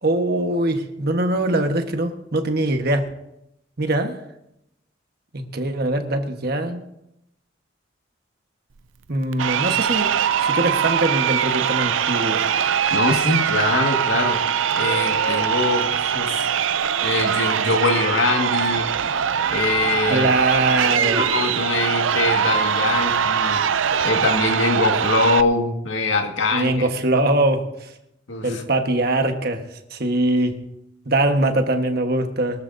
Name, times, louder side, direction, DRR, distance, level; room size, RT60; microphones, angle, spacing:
voice 1, 0.0-3.0 3.8-4.2 5.3-6.8 9.1-10.1 10.4-12.4 20.1-21.2 26.5-27.9 28.4-29.6 29.9-30.5 31.0-32.6, right 2 dB, 55° right, 5 dB, 1.3 m, -22 dB
Crowd, 9.3-25.4, right 8 dB, 80° right, 0.5 m, -22 dB
voice 2, 12.9-14.4 14.7-16.4 17.0-18.9 19.5-20.3 20.9-23.6 24.0-26.9 28.3-28.6, left 2 dB, 75° left, 3 dB, 1.9 m, -23 dB
22.5 x 13.0 x 2.7 m, 0.84 s
head